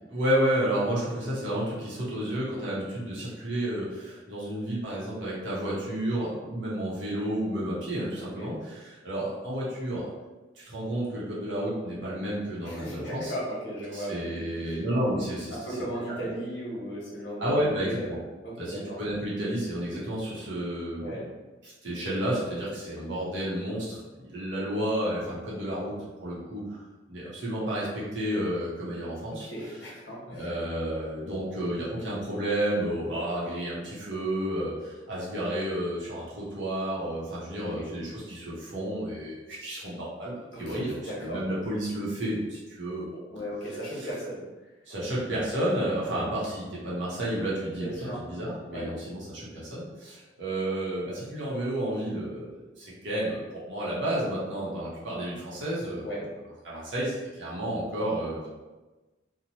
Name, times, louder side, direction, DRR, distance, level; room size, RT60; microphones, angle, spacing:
voice 1, 0.1-10.1 10.6-13.3 13.9-15.6 17.4-18.2 18.6-21.2 21.6-25.9 26.2-26.8 27.1-29.5 30.3-40.9 41.2-43.1 44.0-44.1 44.9-56.1 56.6-58.5, right 1 dB, 85° right, -7 dB, 0.8 m, -31 dB
voice 2, 8.2-8.6 12.6-14.8 15.5-18.2 18.4-19.0 21.0-21.2 29.4-30.6 37.5-37.9 40.5-41.4 43.3-44.4 47.8-48.2 48.7-48.9 56.0-56.3, right 1 dB, 60° left, -6 dB, 0.9 m, -36 dB
2.8 x 2.1 x 2.9 m, 1.2 s
head